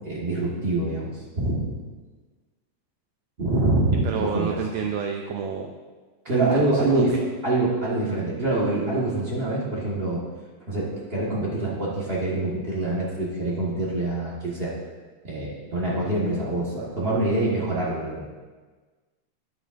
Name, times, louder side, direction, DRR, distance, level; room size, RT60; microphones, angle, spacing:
voice 1, 0.0-1.8 3.4-4.6 6.2-7.1 7.4-10.2 10.7-14.7 15.2-18.3, right 2 dB, 45° right, -6 dB, 0.7 m, -25 dB
voice 2, 4.0-5.7 6.3-7.2, right 6 dB, 80° right, 3 dB, 1.6 m, -29 dB
10.0 x 9.4 x 2.5 m, 1.4 s
omnidirectional pair, 3.5 m